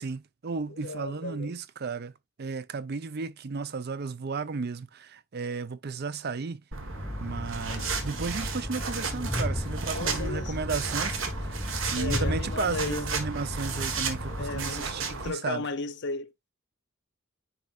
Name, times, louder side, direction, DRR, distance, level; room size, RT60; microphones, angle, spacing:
voice 1, 0.0-2.1 2.4-6.6 7.2-15.6, right 4 dB, 50° right, 0.5 m, -34 dB
voice 2, 0.7-1.6 7.7-8.0 9.9-10.6 12.0-13.1 14.4-16.5, left 3 dB, 60° left, 0.8 m, -35 dB
sound 1, 6.7-15.3, right 4 dB, 70° right, 1.5 m, -34 dB
Train, 6.9-14.7, left 1 dB, 10° left, 0.8 m, -35 dB
9.7 x 4.2 x 2.4 m
head